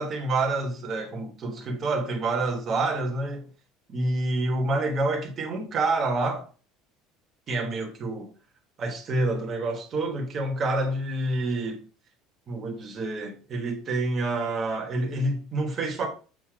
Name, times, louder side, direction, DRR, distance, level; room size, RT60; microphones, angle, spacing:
voice 1, 0.0-3.4 3.9-6.5 7.5-8.3 8.8-11.8 12.5-16.1, right 2 dB, 25° right, 1.2 m, -28 dB
7.4 x 2.7 x 4.9 m
cardioid pair, 175°, 0 cm